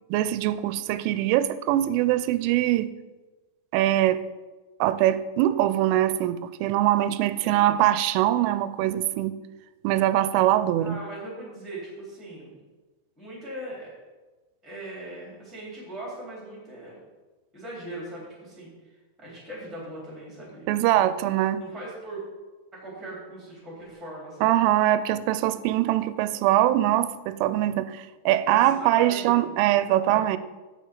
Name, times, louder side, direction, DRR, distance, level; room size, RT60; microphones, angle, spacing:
voice 1, 0.1-2.9 3.7-4.2 4.8-9.4 9.8-11.0 20.7-21.6 24.4-30.4, right 13 dB, 90° right, 14 dB, 3.1 m, -22 dB
voice 2, 7.4-7.7 10.8-12.5 13.2-13.9 14.6-17.0 17.5-18.7 19.2-21.1 21.6-22.2 22.7-24.6 28.5-29.5 30.0-30.3, right 1 dB, ahead, -5 dB, 2.9 m, -40 dB
15.5 x 6.9 x 3.9 m, 1.2 s
omnidirectional pair, 5.6 m